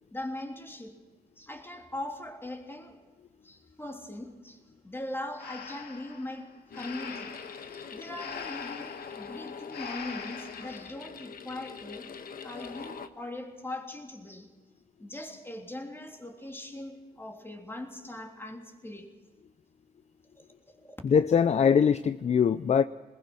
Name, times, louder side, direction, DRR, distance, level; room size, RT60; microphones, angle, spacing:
voice 1, 0.1-1.0 1.4-3.0 3.4-7.4 7.7-12.1 12.4-14.5 15.0-19.1 20.4-20.5 20.7-21.0, left 1 dB, 15° left, 3.2 m, -40 dB
Breathing, 5.4-10.9, left 6 dB, 75° left, 1.9 m, -43 dB
sound 1, 6.7-13.1, left 6 dB, 60° left, 1.3 m, -43 dB
voice 2, 21.0-22.8, left 7 dB, 40° left, 0.5 m, -22 dB
21.0 x 20.0 x 6.2 m
cardioid pair, 95°, 17 cm